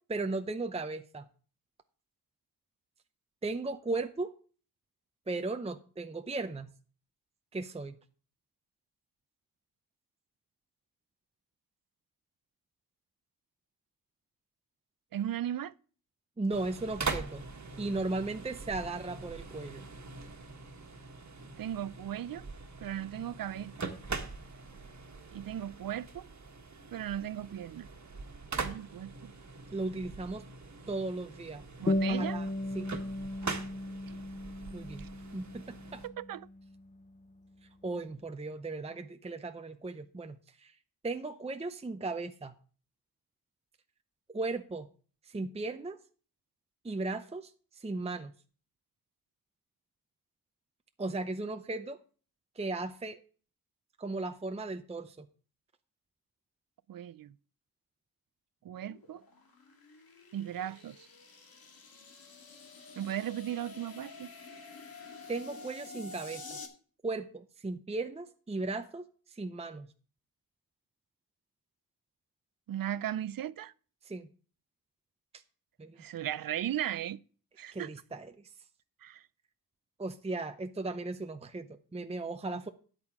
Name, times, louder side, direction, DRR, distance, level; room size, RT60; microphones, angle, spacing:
voice 1, 0.1-1.2 3.4-4.3 5.3-6.7 7.5-8.0 16.4-17.4 17.8-19.8 29.7-30.4 30.9-31.6 32.1-32.5 32.7-32.9 34.7-35.0 35.3-36.0 37.8-40.7 41.0-42.5 44.3-44.9 45.3-46.0 46.8-47.5 47.8-48.3 51.0-52.0 52.6-53.2 54.0-55.3 65.3-66.6 67.0-69.9 74.0-74.3 75.8-76.0 77.7-78.3 80.0-82.7, right 3 dB, 15° right, 0.6 m, -36 dB
voice 2, 15.1-15.7 21.6-22.5 22.8-23.9 25.3-26.3 26.9-27.9 28.6-29.3 31.8-32.4 35.0-35.1 36.0-36.5 56.9-57.3 58.6-59.2 60.3-61.1 63.0-64.3 72.7-73.7 76.0-77.2 77.6-77.9 79.0-79.2, right 11 dB, 70° right, 0.5 m, -37 dB
sound 1, 16.5-36.1, right 4 dB, 50° right, 1.5 m, -43 dB
sound 2, 31.9-36.9, left 1 dB, 20° left, 0.7 m, -35 dB
sound 3, 58.7-66.7, left 3 dB, 75° left, 2.1 m, -49 dB
13.0 x 9.2 x 3.6 m
wide cardioid pair, 85°, 36 cm